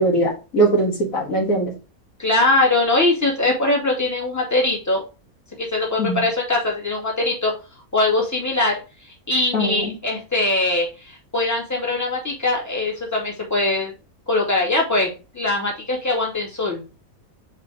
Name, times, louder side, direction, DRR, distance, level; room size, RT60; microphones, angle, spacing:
voice 1, 0.0-1.7 6.0-6.2 9.5-9.9, right 2 dB, 60° left, -1 dB, 2.1 m, -20 dB
voice 2, 2.2-5.0 5.6-7.5 7.9-8.8 9.3-13.9 14.3-16.8, left 2 dB, 10° left, -2 dB, 2.3 m, -21 dB
4.9 x 4.4 x 4.9 m, 0.30 s
omnidirectional pair, 1.6 m